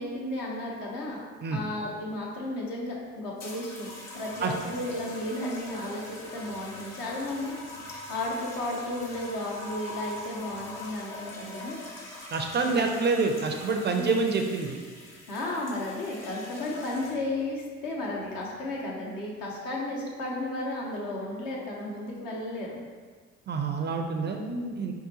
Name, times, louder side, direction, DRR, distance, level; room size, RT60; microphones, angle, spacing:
voice 1, 0.0-1.2 1.5-7.5 8.1-11.8 12.6-13.0 13.9-14.1 15.3-22.8 24.3-24.9, left 1 dB, 70° left, -2 dB, 0.8 m, -34 dB
sound 1, 3.4-17.4 18.3-18.6, left 2 dB, 45° left, 1.0 m, -43 dB
voice 2, 12.3-14.8 23.5-24.4 24.8-24.9, right 4 dB, 30° right, 4 dB, 0.4 m, -27 dB
4.7 x 2.2 x 2.8 m, 1.5 s
hypercardioid pair, 50°, 36 cm